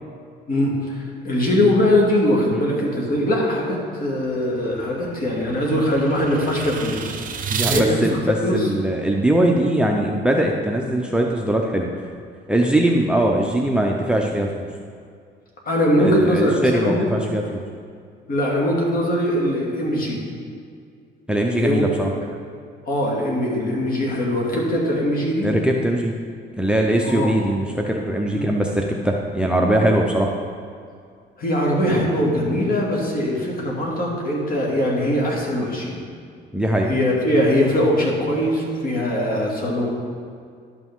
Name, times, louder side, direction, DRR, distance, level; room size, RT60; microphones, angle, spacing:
voice 1, 0.5-8.1 8.4-8.7 15.7-17.0 18.3-20.2 21.5-21.9 22.9-25.5 27.0-27.3 28.3-28.5 31.4-36.0 36.9-39.9, left 1 dB, 45° left, -3 dB, 2.3 m, -21 dB
sound 1, 4.2-7.8, right 6 dB, 45° right, 0.8 m, -30 dB
voice 2, 7.5-11.9 12.5-14.6 16.0-17.6 21.3-22.1 25.4-26.1 26.6-30.3 36.5-36.9, right 1 dB, 5° right, 1 dB, 0.7 m, -21 dB
11.0 x 5.9 x 3.7 m, 2.2 s
cardioid pair, 85°, 20 cm